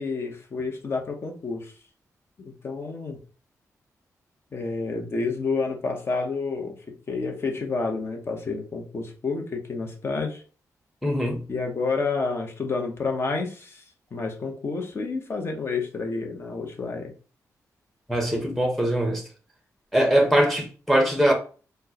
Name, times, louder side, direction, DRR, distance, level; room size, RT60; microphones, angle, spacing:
voice 1, 0.0-1.7 2.4-3.2 4.5-6.8 7.1-10.4 11.5-13.8 14.1-17.1, left 4 dB, 40° left, 0.8 m, -29 dB
voice 2, 11.0-11.4 18.1-19.2 19.9-21.3, right 1 dB, 5° left, 0.8 m, -22 dB
4.3 x 2.1 x 2.8 m
cardioid pair, 110°, 6 cm